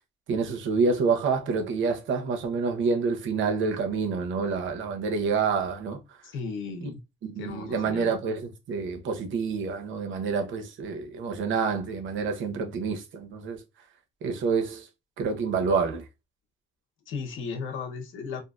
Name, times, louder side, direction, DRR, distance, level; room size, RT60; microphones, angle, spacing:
voice 1, 0.3-6.0 6.8-6.9 7.2-13.6 14.2-14.9 15.2-16.0, right 5 dB, 75° right, 0.9 m, -28 dB
voice 2, 6.2-7.0 7.4-8.1 17.1-18.4, left 5 dB, 80° left, 0.9 m, -35 dB
2.8 x 2.5 x 2.4 m
cardioid pair, 90°, 20 cm